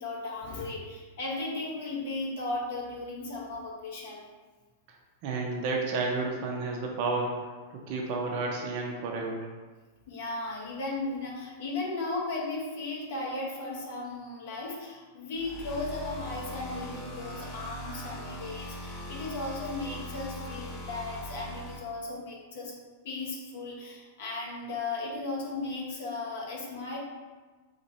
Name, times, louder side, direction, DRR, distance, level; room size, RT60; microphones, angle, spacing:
voice 1, 0.0-4.2 10.1-22.7 23.0-27.0, left 2 dB, 65° left, -4 dB, 0.8 m, -36 dB
voice 2, 5.2-7.3 7.7-9.5, right 3 dB, 55° right, 0 dB, 0.5 m, -31 dB
sound 1, 15.3-21.8, left 1 dB, 35° left, 0.9 m, -40 dB
2.9 x 2.8 x 2.6 m, 1.3 s
hypercardioid pair, 100°, 0 cm